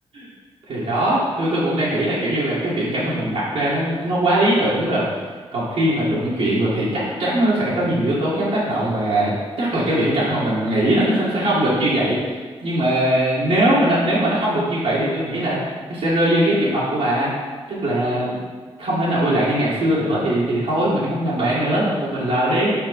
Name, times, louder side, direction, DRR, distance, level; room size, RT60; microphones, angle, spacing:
voice 1, 0.7-5.1 5.5-9.3 9.6-12.2 12.6-17.3 17.7-18.4 18.8-22.7, right 1 dB, 85° right, -10 dB, 2.2 m, -20 dB
8.3 x 4.6 x 4.3 m, 1.4 s
cardioid pair, 70°, 11 cm